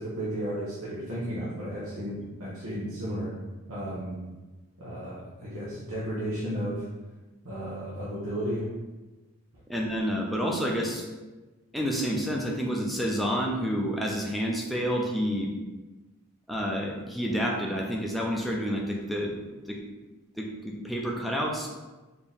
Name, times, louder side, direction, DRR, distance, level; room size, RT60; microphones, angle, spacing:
voice 1, 0.0-3.3 3.7-4.2 4.8-6.8 7.4-8.6, equal, 80° right, -9 dB, 1.0 m, -33 dB
voice 2, 9.7-11.0 11.7-15.5 16.5-19.3 19.7-19.8 20.4-21.7, equal, ahead, -2 dB, 0.4 m, -29 dB
4.2 x 2.9 x 3.5 m, 1.2 s
head